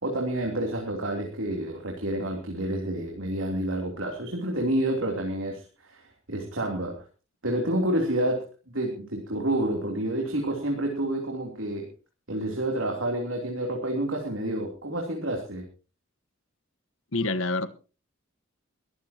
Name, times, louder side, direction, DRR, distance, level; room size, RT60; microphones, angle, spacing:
voice 1, 0.0-7.0 7.4-8.5 8.7-11.9 12.3-15.6, right 1 dB, 85° right, 0 dB, 3.2 m, -29 dB
voice 2, 17.1-17.7, left 2 dB, 85° left, 12 dB, 1.3 m, -26 dB
22.0 x 14.0 x 2.9 m, 0.34 s
head